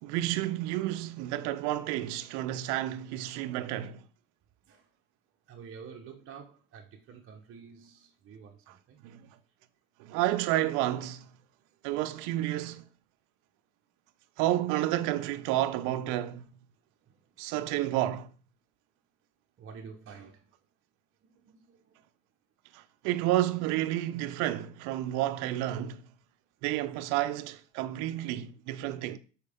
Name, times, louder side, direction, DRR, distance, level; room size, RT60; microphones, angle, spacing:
voice 1, 0.0-4.0 9.0-9.3 10.0-11.3 11.8-12.8 14.4-16.4 17.4-18.3 22.7-26.0 26.6-29.2, right 14 dB, 70° right, 0.6 m, -30 dB
voice 2, 5.5-9.0 19.6-20.5 21.2-22.0, right 6 dB, 40° right, 1.0 m, -49 dB
6.6 x 4.5 x 3.5 m
supercardioid pair, 90°, 32 cm